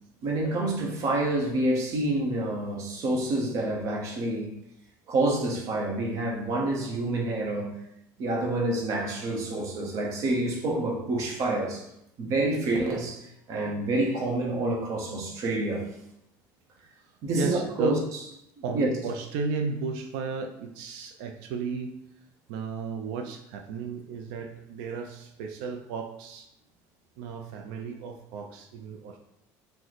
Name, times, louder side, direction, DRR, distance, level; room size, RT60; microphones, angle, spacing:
voice 1, 0.2-4.5 5.1-7.7 8.2-11.8 12.2-15.9 17.2-18.0 18.7-18.9, right 2 dB, 40° right, -1 dB, 0.7 m, -28 dB
voice 2, 17.0-18.0 18.6-22.0 22.5-26.5 27.2-29.2, right 5 dB, 70° right, 4 dB, 0.4 m, -34 dB
3.0 x 2.0 x 3.9 m, 0.81 s
cardioid pair, 160°, 8 cm